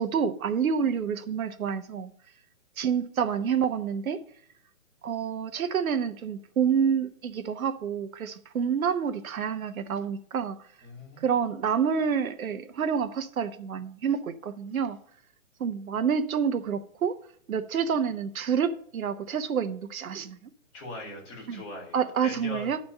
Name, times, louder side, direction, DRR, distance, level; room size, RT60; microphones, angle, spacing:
voice 1, 0.0-2.1 2.8-4.2 5.0-10.6 11.2-15.0 15.6-17.2 17.5-20.5 21.5-21.6 21.9-22.8, right 7 dB, 85° right, 0.9 m, -28 dB
voice 2, 10.8-11.3 20.1-20.2 20.7-22.7, left 2 dB, 25° left, 3.1 m, -41 dB
10.5 x 4.3 x 6.5 m
hypercardioid pair, 170°, 41 cm